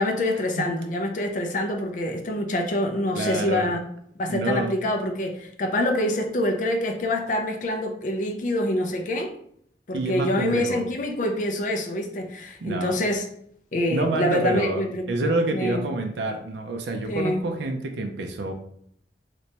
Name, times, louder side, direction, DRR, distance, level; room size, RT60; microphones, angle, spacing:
voice 1, 0.0-3.8 4.2-9.3 9.9-13.2 13.7-15.8 17.1-17.4, left 1 dB, 45° left, 3 dB, 0.4 m, -26 dB
voice 2, 3.2-3.7 4.3-4.7 9.9-10.8 12.6-13.0 13.9-18.5, right 2 dB, 75° right, 4 dB, 0.4 m, -27 dB
3.2 x 3.0 x 2.8 m, 0.68 s
head